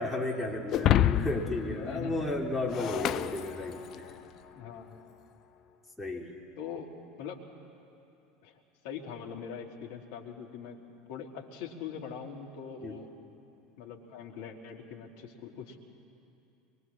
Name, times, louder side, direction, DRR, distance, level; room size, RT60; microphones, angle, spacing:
voice 1, 0.0-4.1 6.0-6.4 12.8-13.0, left 1 dB, 10° left, 0 dB, 3.2 m, -33 dB
Shatter, 0.7-4.2, left 12 dB, 45° left, 0.6 m, -29 dB
voice 2, 1.7-2.3 4.5-5.0 6.6-6.9 7.2-7.4 8.4-10.8 11.1-13.1 13.8-15.9, left 7 dB, 65° left, 2 dB, 2.6 m, -42 dB
24.0 x 22.5 x 7.4 m, 2.8 s
figure-of-eight pair, 75°, 0 cm